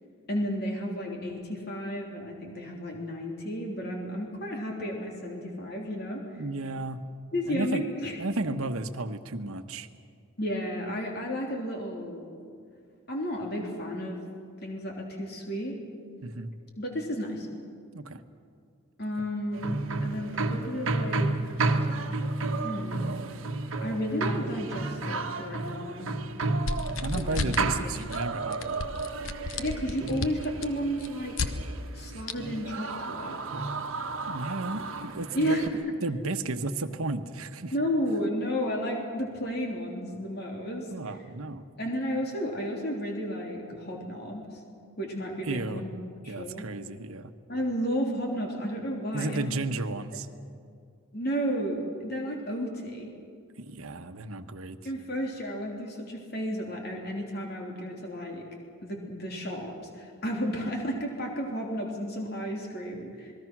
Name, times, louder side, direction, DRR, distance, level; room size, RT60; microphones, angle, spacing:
voice 1, 0.3-6.2 7.3-8.2 10.4-12.3 13.1-14.2 14.6-15.8 16.8-17.5 19.0-21.3 22.6-23.1 23.8-26.1 27.1-27.6 29.6-31.4 31.9-33.4 35.3-35.7 37.7-40.9 41.8-44.4 45.0-45.9 46.2-46.6 47.5-49.5 50.1-50.2 51.1-53.1 54.8-58.4 58.8-63.3, equal, 45° left, 0 dB, 3.3 m, -32 dB
voice 2, 6.4-7.0 7.5-7.8 8.2-9.9 16.2-16.5 17.9-18.2 27.0-28.8 32.1-32.2 34.3-35.6 36.0-37.7 40.9-41.6 45.4-45.8 46.3-47.3 49.1-50.3 53.6-54.8, right 2 dB, 80° right, 8 dB, 1.1 m, -33 dB
sound 1, 19.5-35.7, right 3 dB, 65° right, 1.4 m, -32 dB
sound 2, 26.6-27.7 28.0-28.2 28.5-31.5 32.3-32.4, left 3 dB, 70° left, 1.2 m, -32 dB
28.0 x 20.5 x 6.1 m, 2.3 s
head